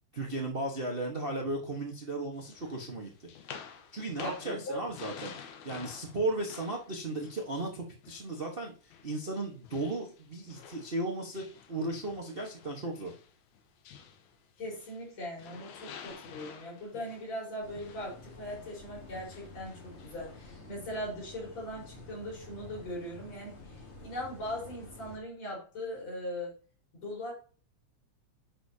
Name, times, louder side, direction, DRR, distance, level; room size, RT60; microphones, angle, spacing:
voice 1, 0.1-3.3 3.9-5.3 5.6-13.1, right 2 dB, 90° right, -1 dB, 0.5 m, -35 dB
sound 1, 2.4-8.5 8.9-15.1 15.4-20.5, left 7 dB, 80° left, 2.4 m, -50 dB
voice 2, 4.2-4.8 14.6-26.5 26.9-27.3, equal, 65° left, -4 dB, 5.8 m, -40 dB
sound 2, 17.6-25.2, left 2 dB, 45° left, 0.8 m, -50 dB
10.0 x 6.4 x 2.8 m, 0.39 s
omnidirectional pair, 3.3 m